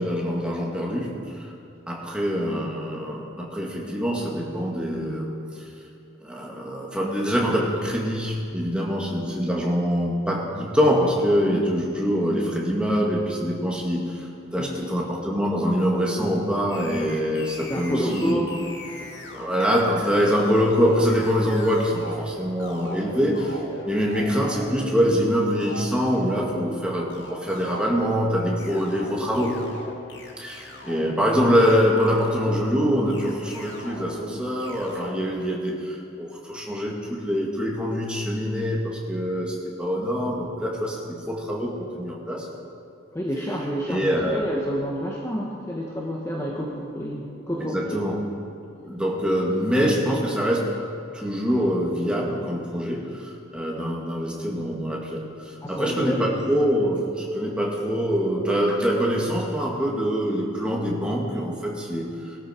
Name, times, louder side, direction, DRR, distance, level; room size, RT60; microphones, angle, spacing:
voice 1, 0.0-1.5 1.9-5.3 6.2-14.3 14.5-18.4 19.3-23.6 23.9-29.7 30.4-42.5 43.9-44.4 47.6-48.2 48.8-50.8 51.1-62.4, equal, 5° right, -3 dB, 2.0 m, -24 dB
sound 1, 16.7-35.2, left 1 dB, 70° left, 2.2 m, -40 dB
voice 2, 17.7-18.5 19.0-19.1 43.1-48.0 55.6-56.2, equal, 15° left, -3 dB, 1.2 m, -29 dB
20.5 x 13.5 x 4.5 m, 2.5 s
head